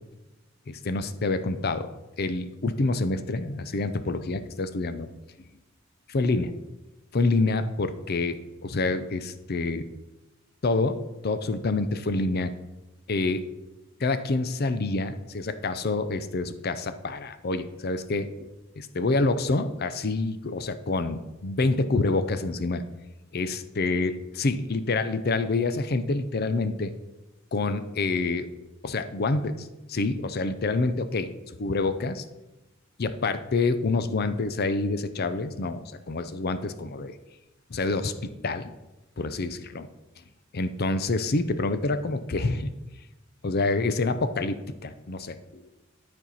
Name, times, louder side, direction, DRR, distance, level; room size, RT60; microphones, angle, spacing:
voice 1, 0.7-1.9 2.2-5.1 6.1-6.5 7.1-9.8 10.6-12.5 13.1-13.5 14.0-18.3 18.8-22.8 23.3-24.1 24.4-26.9 27.5-28.5 28.8-31.3 31.6-32.2 33.0-37.1 37.7-38.7 39.2-39.9 40.5-42.7 43.4-45.7, left 3 dB, 50° left, 11 dB, 0.6 m, -27 dB
11.5 x 4.4 x 4.2 m, 1.0 s
head